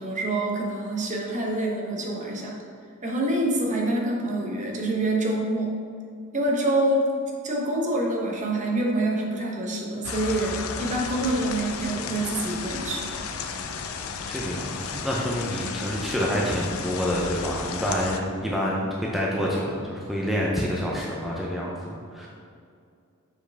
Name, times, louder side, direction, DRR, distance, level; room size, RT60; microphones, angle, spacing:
voice 1, 0.0-2.5 3.0-5.7 6.3-7.1 7.4-13.1 15.6-15.7, right 1 dB, 35° right, -1 dB, 1.0 m, -26 dB
sound 1, 10.0-18.2, left 5 dB, 75° left, 0.5 m, -34 dB
voice 2, 14.3-22.3, equal, ahead, -4 dB, 0.6 m, -27 dB
7.1 x 4.7 x 3.4 m, 2.4 s
head